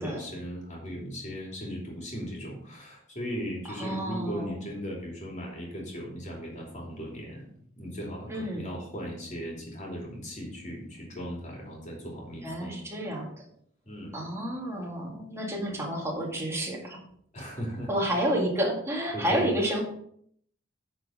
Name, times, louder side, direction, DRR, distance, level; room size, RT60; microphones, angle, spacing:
voice 1, 0.0-7.4 7.8-12.8 13.9-14.2 17.3-18.2 19.1-19.5, equal, 35° left, -1 dB, 2.9 m, -37 dB
voice 2, 3.8-4.6 8.3-8.6 12.4-13.3 14.1-17.0 17.9-19.9, equal, 15° right, -1 dB, 2.0 m, -30 dB
9.1 x 4.7 x 5.1 m, 0.65 s
head